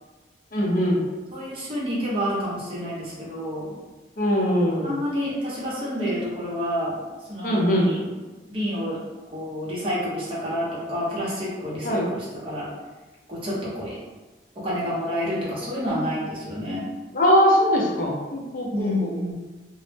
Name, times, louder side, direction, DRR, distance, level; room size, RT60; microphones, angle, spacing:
voice 1, 0.5-1.0 4.2-4.9 7.4-7.9 11.8-12.1 17.1-19.1, equal, 50° left, -2 dB, 0.5 m, -21 dB
voice 2, 1.3-3.7 4.8-7.0 7.3-8.1 8.5-9.0 9.3-12.7 13.3-14.0 14.6-16.8 18.7-19.3, equal, 30° right, -7 dB, 0.7 m, -29 dB
2.0 x 2.0 x 3.2 m, 1.2 s
head